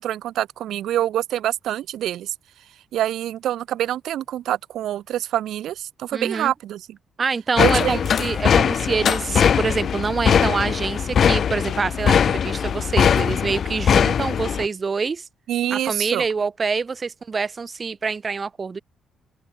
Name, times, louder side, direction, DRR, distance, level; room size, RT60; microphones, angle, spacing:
voice 1, 0.0-2.3 2.9-7.0 7.6-8.0 15.5-16.2, right 12 dB, 75° right, 1.8 m, -26 dB
voice 2, 6.1-6.5 7.2-15.3 15.7-18.8, right 5 dB, 35° right, 3.5 m, -26 dB
sound 1, 7.6-14.7, left 8 dB, 55° left, 0.5 m, -20 dB
open air
cardioid pair, 90°, 0 cm